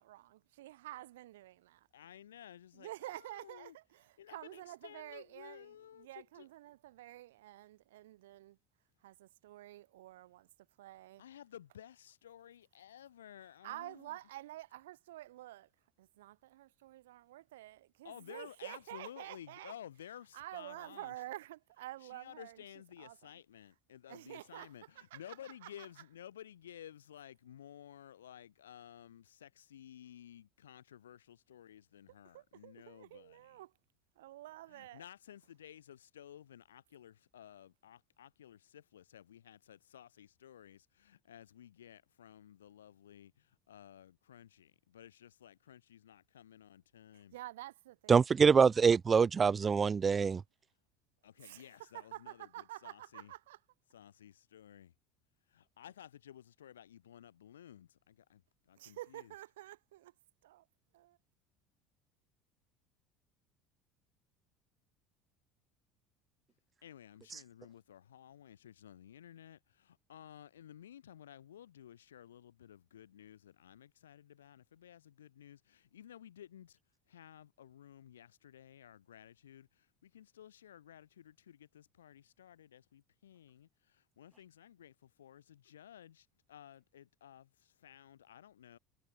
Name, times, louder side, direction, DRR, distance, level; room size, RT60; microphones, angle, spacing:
voice 1, 0.0-1.9 2.7-8.6 9.0-10.5 10.8-11.2 13.6-15.7 16.0-19.7 20.3-22.6 23.0-23.2 24.1-24.7 25.0-25.9 32.3-33.7 34.2-35.0 47.1-48.1 51.4-53.6 58.8-60.1 60.4-60.7 60.9-61.2, right 15 dB, 75° right, 0.7 m, -49 dB
voice 2, 1.9-3.8 4.2-6.5 11.2-14.2 18.0-21.1 22.0-33.6 34.7-47.4 51.2-53.3 53.9-54.9 55.5-59.3 66.8-76.8 77.1-88.8, left 10 dB, 80° left, 1.0 m, -55 dB
voice 3, 48.1-50.4, right 6 dB, 30° right, 0.3 m, -25 dB
figure-of-eight pair, 65°, 0 cm